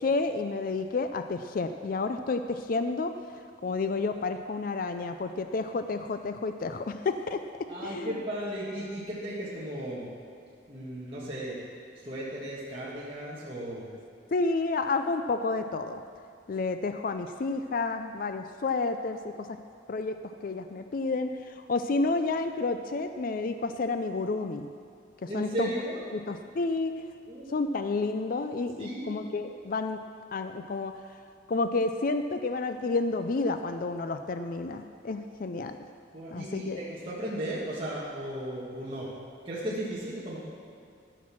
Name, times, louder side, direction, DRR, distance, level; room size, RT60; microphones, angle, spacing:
voice 1, 0.0-3.1 3.6-8.1 14.3-16.0 16.5-19.5 19.9-24.7 25.2-25.7 26.1-26.9 27.5-30.0 30.3-31.0 31.5-35.8 36.3-36.8, left 3 dB, 50° left, 8 dB, 0.4 m, -30 dB
voice 2, 7.7-10.1 10.7-11.6 11.9-13.9 25.3-26.0 27.3-27.9 28.8-29.2 36.1-39.1 39.4-40.4, right 1 dB, 30° right, -8 dB, 1.6 m, -35 dB
13.5 x 6.0 x 6.1 m, 2.4 s
head